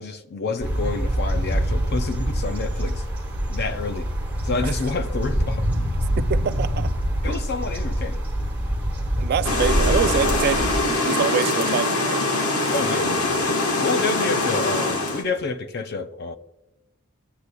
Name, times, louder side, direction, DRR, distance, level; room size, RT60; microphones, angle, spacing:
voice 1, 0.0-3.0 3.5-4.1 4.4-5.7 7.2-8.2 12.7-13.6 13.8-16.3, left 4 dB, 50° left, 0.5 m, -28 dB
sound 1, 0.6-10.8, equal, 10° right, 1.3 m, -25 dB
voice 2, 6.2-6.9 7.2-7.4 9.2-12.2, right 7 dB, 45° right, 0.3 m, -25 dB
sound 2, 9.4-15.2, left 2 dB, 80° left, 1.3 m, -23 dB
13.5 x 8.2 x 2.2 m
head